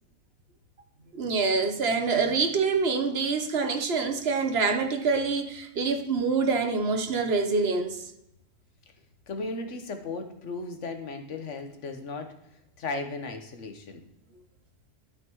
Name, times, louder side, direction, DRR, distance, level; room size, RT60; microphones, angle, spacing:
voice 1, 1.1-8.0, right 4 dB, 60° right, 1.1 m, -26 dB
voice 2, 9.3-12.3 12.8-14.0, left 3 dB, 85° left, 1.4 m, -36 dB
12.5 x 5.7 x 3.0 m
omnidirectional pair, 1.2 m